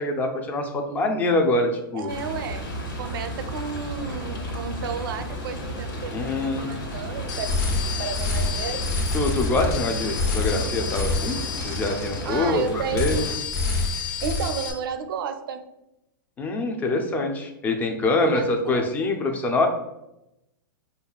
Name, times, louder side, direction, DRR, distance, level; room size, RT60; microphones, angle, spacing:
voice 1, 0.0-2.1 6.1-6.7 9.1-11.4 11.6-13.3 16.4-19.7, left 2 dB, 15° left, 4 dB, 0.4 m, -25 dB
voice 2, 1.9-2.7 3.0-6.1 6.4-8.9 12.2-13.1 14.2-15.6 18.0-18.9, right 6 dB, 75° right, 8 dB, 0.5 m, -32 dB
sound 1, 2.1-13.4, equal, 75° left, 1.3 m, -33 dB
sound 2, 7.3-12.6 12.9-14.7, left 3 dB, 50° left, 0.9 m, -27 dB
5.2 x 2.4 x 2.3 m, 0.89 s
hypercardioid pair, 145°, 12 cm